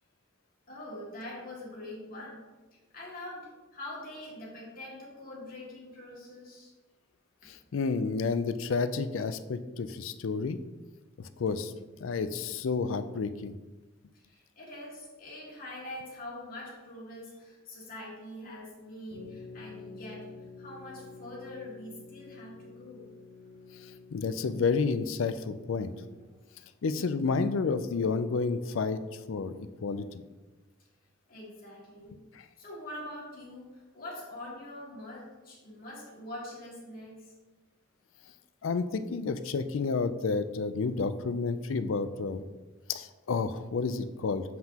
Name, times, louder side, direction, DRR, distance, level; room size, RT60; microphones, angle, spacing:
voice 1, 0.7-2.5 2.9-6.7 7.4-7.5 14.1-20.3 20.6-23.1 31.3-32.2 32.6-37.3, left 1 dB, 50° left, -4 dB, 2.2 m, -44 dB
voice 2, 7.5-10.6 11.4-11.7 12.0-13.5 24.1-25.9 26.8-29.0 29.3-30.0 38.6-42.4 42.9-44.4, left 4 dB, 80° left, 12 dB, 0.4 m, -30 dB
sound 1, 19.1-26.6, left 4 dB, 65° right, 1.5 m, -49 dB
7.5 x 5.8 x 2.9 m, 1.2 s
head